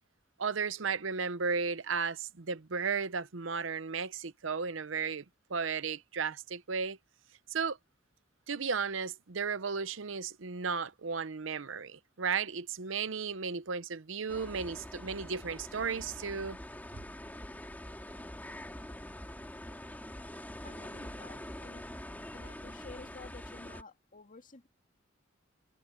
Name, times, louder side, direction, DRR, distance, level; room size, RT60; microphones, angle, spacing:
voice 1, 0.4-5.2 5.5-7.0 7.5-7.8 8.5-16.6, right 5 dB, 75° right, 0.8 m, -34 dB
sound 1, 14.3-23.8, left 1 dB, 10° left, 2.8 m, -45 dB
voice 2, 20.6-21.8 22.3-24.7, left 3 dB, 40° left, 2.2 m, -51 dB
head